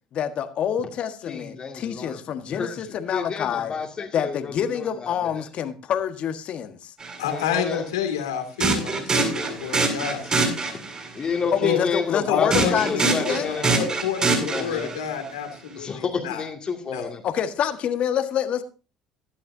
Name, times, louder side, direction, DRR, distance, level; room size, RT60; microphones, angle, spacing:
voice 1, 0.1-3.7 4.1-6.9 11.5-13.5 17.2-18.6, left 9 dB, 50° left, 1.5 m, -27 dB
voice 2, 1.3-2.2 2.5-2.8 3.1-5.2 7.3-7.8 11.1-13.9 14.4-14.9 15.8-17.2, left 5 dB, 35° left, 2.2 m, -30 dB
sound 1, 7.0-7.2 8.6-11.1 12.5-15.1, right 3 dB, 30° right, 7.1 m, -24 dB
voice 3, 7.2-10.5 11.6-11.8 12.3-16.4 16.8-17.1, left 8 dB, 85° left, 2.6 m, -29 dB
16.0 x 11.5 x 2.7 m
hypercardioid pair, 70°, 3 cm